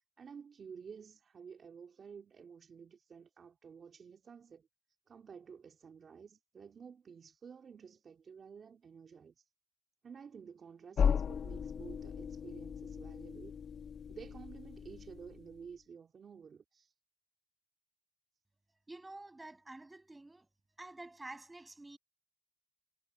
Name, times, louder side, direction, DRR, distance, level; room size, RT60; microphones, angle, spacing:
voice 1, 0.2-4.7 5.1-9.5 10.0-13.6 14.1-16.9, right 6 dB, 50° right, 3.3 m, -52 dB
sound 1, 11.0-15.6, left 7 dB, 55° left, 1.9 m, -36 dB
voice 2, 18.9-20.5 20.8-22.0, right 2 dB, 15° right, 7.6 m, -49 dB
cardioid pair, 90°, 0 cm